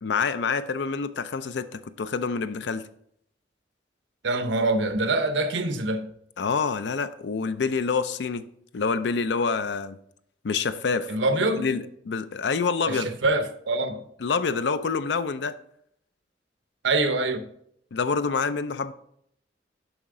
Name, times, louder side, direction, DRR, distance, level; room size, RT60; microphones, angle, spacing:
voice 1, 0.0-2.9 6.4-8.5 8.7-10.0 10.4-11.1 11.6-13.1 14.2-15.5 17.9-18.9, left 5 dB, 70° left, 0.5 m, -27 dB
voice 2, 4.2-6.1 11.1-11.6 12.9-14.0 16.8-17.4, right 2 dB, 85° right, 0.8 m, -25 dB
7.1 x 5.5 x 3.7 m
head